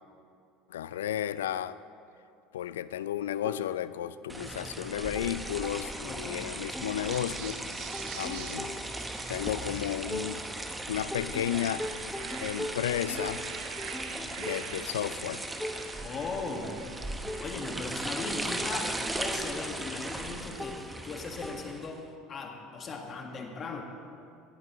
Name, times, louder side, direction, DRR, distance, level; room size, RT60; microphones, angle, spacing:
voice 1, 0.7-1.8 2.5-7.7 8.1-8.7 9.3-10.4 10.9-11.9 12.4-13.4 14.4-15.4, left 11 dB, 85° left, 16 dB, 0.3 m, -33 dB
sound 1, 3.4-4.5 4.8-6.4 6.7-10.8 11.1-22.2, left 1 dB, 5° left, 0.7 m, -43 dB
sound 2, 4.3-22.0, right 1 dB, 10° right, 1.0 m, -38 dB
voice 2, 6.0-6.9 15.9-16.8 17.4-23.8, left 4 dB, 40° left, 3 dB, 1.7 m, -38 dB
sound 3, 7.0-10.9 11.3-19.9, right 9 dB, 60° right, 0.7 m, -47 dB
17.5 x 11.0 x 3.1 m, 2.5 s
hypercardioid pair, 85°, 0 cm